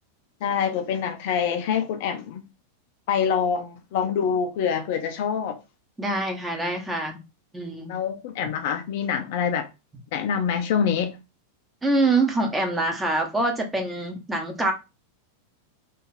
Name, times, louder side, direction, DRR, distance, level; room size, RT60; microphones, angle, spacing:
voice 1, 0.4-2.4 3.1-5.6 7.9-9.7 10.1-11.2, left 7 dB, 50° left, 0.4 m, -25 dB
voice 2, 6.0-7.2 7.5-8.0 11.8-14.7, right 2 dB, 10° right, 0.8 m, -25 dB
2.5 x 2.3 x 3.1 m
figure-of-eight pair, 90°, 0 cm